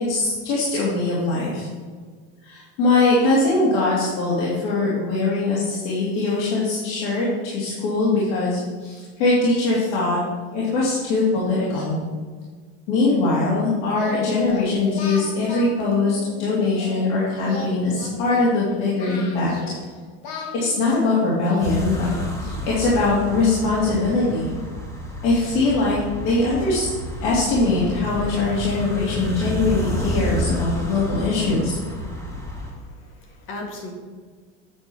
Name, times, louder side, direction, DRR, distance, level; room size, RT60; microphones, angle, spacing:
voice 1, 0.0-1.7 2.4-10.2 10.5-12.0 12.9-19.5 20.6-22.1 22.4-24.5 25.2-26.9 27.2-31.8, left 3 dB, 60° left, -7 dB, 2.7 m, -21 dB
Singing, 13.9-16.9 17.4-19.9 20.2-22.8, left 3 dB, 80° left, 2.2 m, -38 dB
sound 1, 21.6-32.7, equal, 10° left, 1.9 m, -30 dB
voice 2, 32.3-33.9, left 2 dB, 40° left, 2 dB, 1.9 m, -38 dB
8.9 x 5.5 x 6.1 m, 1.5 s
supercardioid pair, 155°, 33 cm